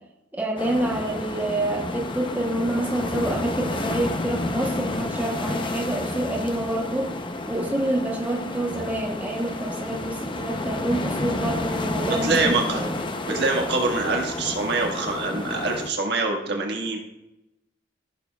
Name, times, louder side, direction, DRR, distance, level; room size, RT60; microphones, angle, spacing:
voice 1, 0.3-7.1 7.5-12.9, right 1 dB, 10° right, -1 dB, 0.9 m, -27 dB
sound 1, 0.6-15.9, left 2 dB, 25° left, 0.6 m, -30 dB
voice 2, 12.0-12.8 13.3-17.0, right 3 dB, 65° right, 1 dB, 1.6 m, -25 dB
15.0 x 6.8 x 2.3 m, 0.95 s
head